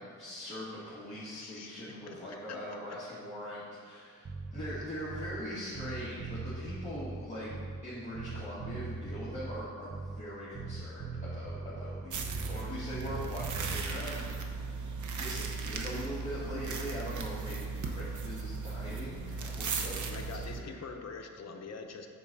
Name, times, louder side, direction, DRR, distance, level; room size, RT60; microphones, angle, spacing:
voice 1, 0.0-4.3 4.5-7.5 7.8-14.6 15.0-20.3 20.5-20.8, equal, 25° left, -11 dB, 2.1 m, -41 dB
voice 2, 1.2-2.8 20.1-22.1, left 4 dB, 60° left, 3 dB, 1.0 m, -45 dB
Bass guitar, 4.2-5.5 5.7-10.3 10.5-12.7 12.9-13.8, right 3 dB, 25° right, 0.5 m, -40 dB
sound 1, 12.1-20.6, right 4 dB, 75° right, 0.9 m, -37 dB
9.3 x 4.2 x 6.9 m, 2.2 s
wide cardioid pair, 145°, 30 cm